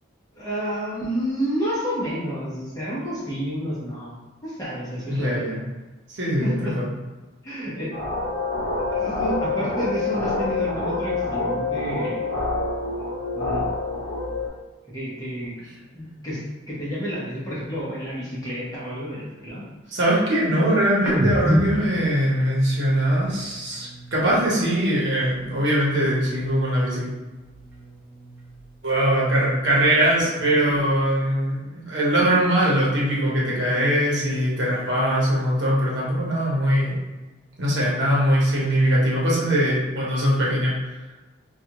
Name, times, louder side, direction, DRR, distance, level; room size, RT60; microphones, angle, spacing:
voice 1, 0.4-4.1 4.4-5.6 6.4-6.8 7.4-8.0 8.9-12.2 13.0-13.6 14.9-19.6 30.2-30.8, equal, 15° left, -8 dB, 0.9 m, -30 dB
voice 2, 5.1-5.6 6.1-6.9 19.9-27.1 28.8-37.0 37.6-40.7, right 1 dB, 60° right, -5 dB, 0.9 m, -21 dB
sound 1, 7.9-14.5, left 3 dB, 85° left, 0.7 m, -27 dB
sound 2, 21.0-24.6 24.9-26.7 27.0-28.9 29.2-31.1, equal, 10° right, 0.6 m, -30 dB
3.3 x 2.4 x 2.9 m, 1.2 s
head